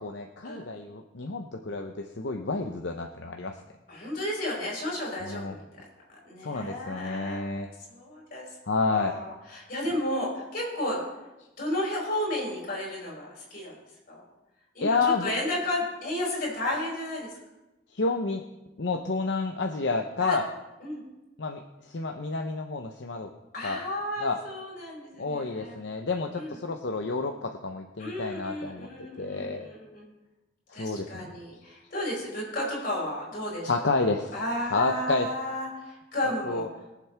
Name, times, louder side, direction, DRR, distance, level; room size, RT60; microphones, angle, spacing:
voice 1, 0.0-3.6 5.2-5.5 6.4-7.7 8.6-9.1 14.8-15.3 17.9-18.4 18.8-20.5 21.4-23.3 23.6-23.8 24.2-24.4 25.2-29.7 30.7-31.3 33.7-34.3 34.7-35.3 36.4-36.7, left 3 dB, 75° left, 3 dB, 0.8 m, -30 dB
voice 2, 3.9-5.6 6.2-8.4 8.9-11.0 11.6-13.7 14.1-14.2 14.8-17.3 20.2-20.4 20.8-21.0 23.5-25.8 26.3-26.6 28.0-30.1 30.7-33.7 34.3-36.6, left 1 dB, 50° left, -4 dB, 5.1 m, -33 dB
22.5 x 7.5 x 3.4 m, 1.0 s
head